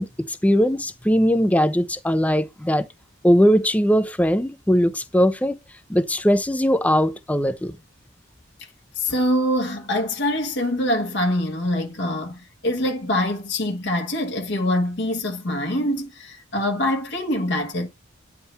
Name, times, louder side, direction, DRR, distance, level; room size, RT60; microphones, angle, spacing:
voice 1, 0.0-2.9 3.2-5.6 5.9-7.8, equal, 5° left, 0.4 m, -20 dB
voice 2, 9.0-17.9, left 1 dB, 60° left, 1.1 m, -24 dB
9.2 x 3.6 x 4.2 m
head